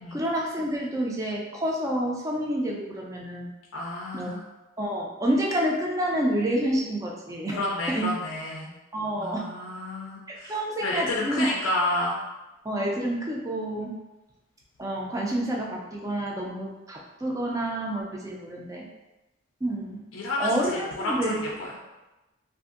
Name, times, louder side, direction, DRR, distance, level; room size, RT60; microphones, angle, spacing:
voice 1, 0.1-3.5 4.1-4.3 4.8-7.6 7.9-8.1 8.9-9.5 10.3-11.6 12.6-13.9 14.8-18.9 19.6-20.0 20.4-21.5, right 1 dB, 15° right, -1 dB, 0.3 m, -28 dB
voice 2, 3.7-4.4 7.5-8.7 9.2-10.5 10.8-12.2 20.1-21.4, left 1 dB, 80° left, -3 dB, 0.4 m, -30 dB
2.6 x 2.5 x 2.4 m, 1.0 s
head